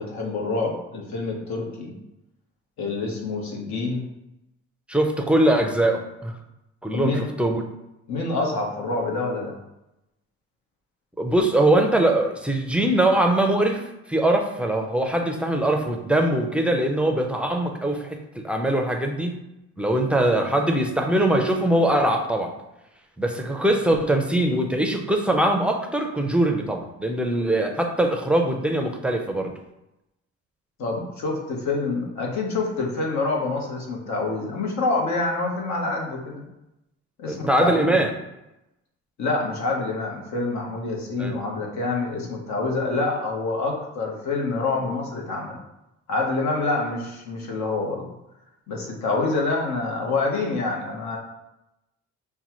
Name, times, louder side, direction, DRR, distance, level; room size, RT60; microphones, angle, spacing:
voice 1, 0.0-1.9 2.8-4.0 6.9-7.3 8.1-9.6 30.8-36.4 37.2-38.0 39.2-45.6 46.1-48.1 48.7-51.2, left 3 dB, 65° left, 0 dB, 1.1 m, -27 dB
voice 2, 4.9-6.3 6.8-7.6 11.2-13.8 14.1-19.4 19.8-22.5 23.2-29.5 37.3-38.1 41.2-41.3, right 1 dB, 5° right, 3 dB, 0.5 m, -22 dB
5.4 x 2.3 x 3.0 m, 0.90 s
cardioid pair, 90°, 30 cm